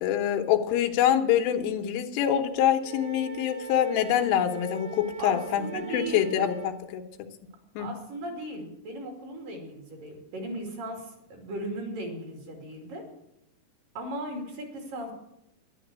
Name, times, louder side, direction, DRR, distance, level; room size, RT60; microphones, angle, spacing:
voice 1, 0.0-7.0 7.8-7.9, left 10 dB, 90° left, 5 dB, 3.7 m, -25 dB
Wind instrument woodwind instrument, 2.8-6.7, right 6 dB, 75° right, 3.8 m, -41 dB
voice 2, 5.2-6.4 7.8-13.1 14.0-15.1, right 1 dB, 50° right, 2 dB, 3.8 m, -37 dB
11.5 x 11.0 x 8.2 m, 0.83 s
omnidirectional pair, 5.5 m